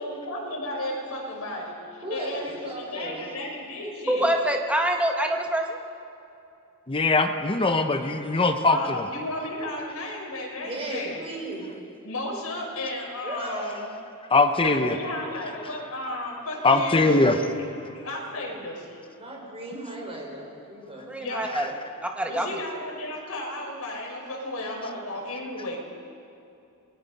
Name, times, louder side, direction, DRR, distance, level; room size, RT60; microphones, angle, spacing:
voice 1, 0.0-1.7 2.1-4.3 8.7-11.2 12.0-13.9 14.6-19.0 21.2-21.7 22.3-25.8, left 1 dB, 80° left, -1 dB, 5.4 m, -34 dB
voice 2, 2.0-3.3 10.6-11.6 13.2-13.6 19.2-21.1, right 1 dB, 25° right, -1 dB, 5.2 m, -36 dB
voice 3, 4.1-5.8 21.1-21.6 22.0-22.6, right 1 dB, 5° right, 2 dB, 1.5 m, -25 dB
voice 4, 6.9-8.8 14.3-15.0 16.6-17.4, left 3 dB, 25° left, 7 dB, 1.0 m, -21 dB
28.0 x 21.5 x 5.5 m, 2.7 s
head